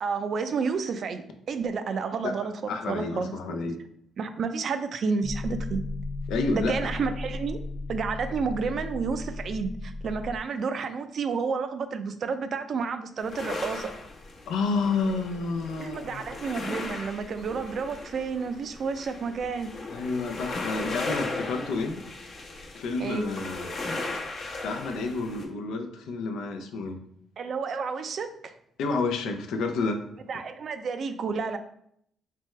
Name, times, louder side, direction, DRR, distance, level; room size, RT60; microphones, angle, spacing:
voice 1, 0.0-2.5 2.9-3.8 4.2-5.8 6.5-7.6 7.9-13.9 15.8-19.7 23.0-23.3 27.4-28.5 30.3-31.6, right 5 dB, 55° right, 9 dB, 0.4 m, -30 dB
voice 2, 2.7-3.8 6.3-6.9 14.5-16.3 19.9-22.0 22.7-23.7 24.6-27.0 28.8-30.0, left 3 dB, 85° left, 6 dB, 0.5 m, -30 dB
sound 1, 5.2-10.4, left 2 dB, 10° left, 0.4 m, -35 dB
sound 2, 13.2-25.5, left 2 dB, 55° left, 0.8 m, -37 dB
3.4 x 3.2 x 3.2 m, 0.70 s
cardioid pair, 90°, 0 cm